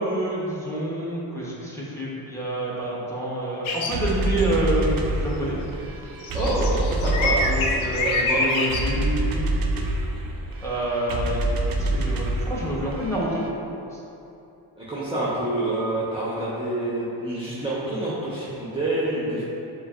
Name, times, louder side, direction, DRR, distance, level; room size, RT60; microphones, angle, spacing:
voice 1, 0.0-5.6 7.5-9.5 10.6-13.5, right 1 dB, 5° left, -6 dB, 1.1 m, -28 dB
sound 1, 3.6-4.0 4.4-4.5 6.2-8.9, left 2 dB, 75° left, 0.6 m, -26 dB
sound 2, 3.9-13.5, right 1 dB, 45° right, 0.5 m, -27 dB
voice 2, 6.3-7.4 8.0-8.4 14.8-19.4, right 1 dB, 10° right, -9 dB, 0.9 m, -27 dB
6.6 x 2.2 x 2.5 m, 2.9 s
supercardioid pair, 55°, 48 cm